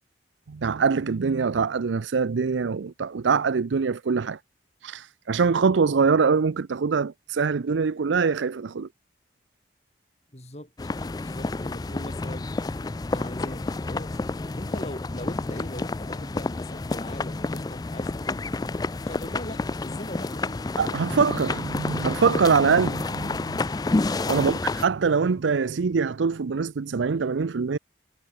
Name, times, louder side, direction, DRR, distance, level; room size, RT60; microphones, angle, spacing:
voice 1, 0.5-4.4 4.8-8.9 20.8-23.6 24.3-24.5 24.8-27.8, right 5 dB, 90° right, 0.5 m, -23 dB
voice 2, 10.3-10.7 11.2-12.5 13.1-14.2 14.5-18.4 19.0-20.7 24.3-24.6, left 1 dB, 35° left, 4.0 m, -40 dB
sound 1, 10.8-24.9, left 3 dB, 20° left, 0.3 m, -29 dB
head